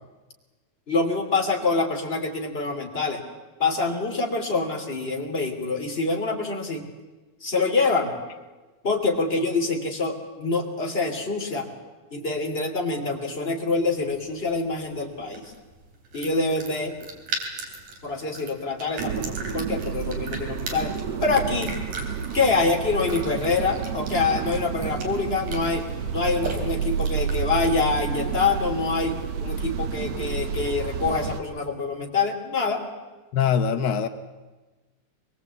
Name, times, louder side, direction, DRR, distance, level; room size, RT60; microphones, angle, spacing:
voice 1, 0.9-3.2 3.6-6.8 7.4-8.1 8.8-11.7 12.1-15.5 16.1-17.0 18.0-20.9 21.2-21.7 22.3-25.8 26.1-32.8, left 3 dB, 20° left, 1 dB, 3.0 m, -25 dB
sound 1, 13.8-28.7, right 3 dB, 90° right, 4.9 m, -39 dB
sound 2, 19.0-31.4, right 6 dB, 60° right, 2.1 m, -30 dB
voice 2, 33.3-34.1, left 7 dB, 90° left, 9 dB, 0.9 m, -22 dB
23.0 x 21.5 x 8.3 m, 1.2 s
omnidirectional pair, 3.4 m